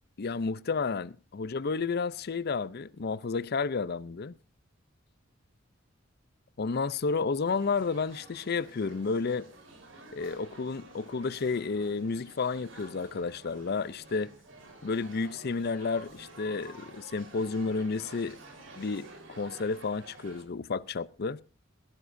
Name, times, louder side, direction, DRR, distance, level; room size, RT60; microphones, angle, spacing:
voice 1, 0.2-4.3 6.6-9.5 10.1-14.3 14.8-18.4 18.8-21.4, left 4 dB, 55° left, 0.5 m, -31 dB
sound 1, 7.4-20.4, right 2 dB, 70° right, 4.1 m, -50 dB
17.5 x 16.0 x 2.6 m
head